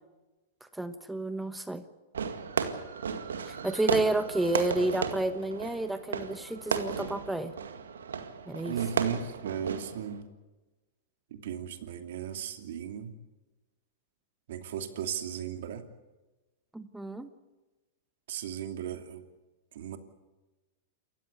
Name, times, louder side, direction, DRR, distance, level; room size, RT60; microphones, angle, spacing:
voice 1, 0.7-1.8 3.5-7.5 8.5-8.8 16.7-17.3, right 2 dB, 5° right, 11 dB, 1.1 m, -31 dB
Fireworks, 2.1-10.2, right 6 dB, 90° right, 2.0 m, -34 dB
voice 2, 8.7-10.2 11.3-13.1 14.5-15.8 18.3-19.2 19.7-20.0, right 8 dB, 70° right, 7 dB, 2.8 m, -36 dB
28.0 x 15.0 x 8.4 m, 1.1 s
hypercardioid pair, 120°, 0 cm